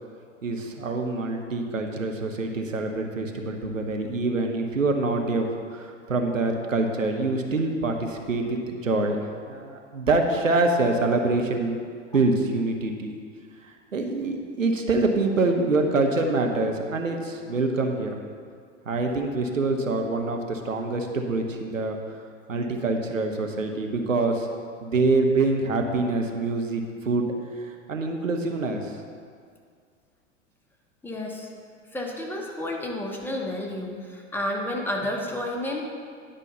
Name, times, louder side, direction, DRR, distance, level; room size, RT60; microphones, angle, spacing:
voice 1, 0.4-9.2 9.5-11.8 12.1-13.1 13.6-18.1 18.9-22.0 22.5-24.5 24.8-29.0, right 3 dB, 80° right, 3 dB, 1.0 m, -25 dB
voice 2, 31.0-31.5 31.9-35.9, left 1 dB, 5° left, -1 dB, 1.1 m, -31 dB
10.0 x 5.4 x 5.5 m, 2.1 s
figure-of-eight pair, 90°, 38 cm